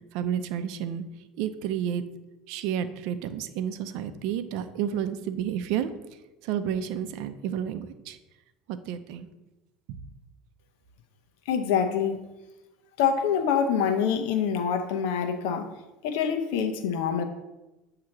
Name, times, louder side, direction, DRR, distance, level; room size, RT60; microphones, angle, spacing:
voice 1, 0.1-1.0 1.4-2.0 2.5-5.9 6.4-8.2 8.7-9.3 9.9-10.0, right 9 dB, 70° right, 10 dB, 0.5 m, -30 dB
voice 2, 11.5-12.2 13.0-15.7 16.0-17.2, left 7 dB, 75° left, 7 dB, 0.8 m, -25 dB
7.6 x 2.9 x 5.9 m, 1.0 s
supercardioid pair, 115°, 0 cm